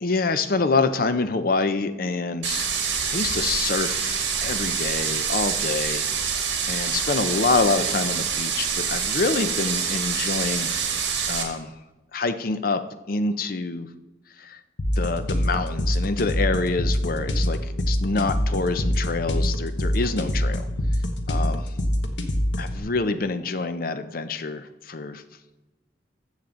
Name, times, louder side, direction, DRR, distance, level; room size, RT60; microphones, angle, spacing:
voice 1, 0.0-2.7 3.1-6.1 6.7-10.7 11.3-11.7 12.1-13.9 14.4-14.6 15.0-20.7 21.3-21.6 22.6-25.2, left 3 dB, 50° left, 11 dB, 0.6 m, -26 dB
sound 1, 2.4-11.4, right 6 dB, 70° right, 1.9 m, -26 dB
sound 2, 14.8-22.8, equal, 75° left, 1.1 m, -25 dB
14.5 x 7.6 x 3.8 m, 1.1 s
head